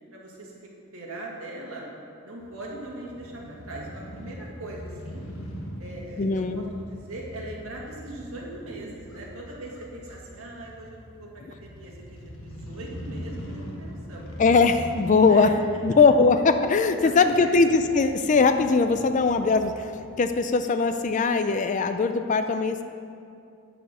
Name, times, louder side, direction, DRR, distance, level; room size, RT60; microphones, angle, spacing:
voice 1, 0.1-1.8 2.2-5.3 5.8-14.3 15.2-15.6 17.0-17.6, right 1 dB, 70° right, -3 dB, 1.8 m, -40 dB
Crow / Motorcycle, 2.4-20.3, equal, 65° left, 1.1 m, -42 dB
voice 2, 6.2-6.6 14.4-15.5 15.8-19.9 20.2-22.8, left 4 dB, 35° left, 9 dB, 0.3 m, -20 dB
11.0 x 4.3 x 6.8 m, 2.5 s
head